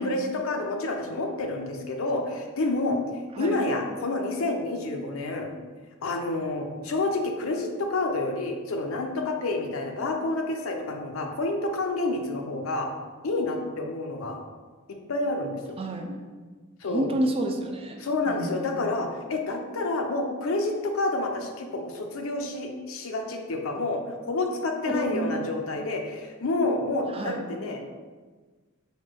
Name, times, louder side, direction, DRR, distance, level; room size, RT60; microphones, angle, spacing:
voice 1, 0.0-3.0 3.4-5.5 6.0-12.9 13.2-14.4 14.9-15.8 16.8-17.1 18.0-24.0 24.3-27.8, left 2 dB, 75° left, 3 dB, 0.5 m, -29 dB
voice 2, 15.8-16.2 16.9-18.7 24.8-25.4 27.1-27.4, right 1 dB, 25° right, 3 dB, 0.4 m, -30 dB
4.4 x 2.2 x 4.5 m, 1.4 s
head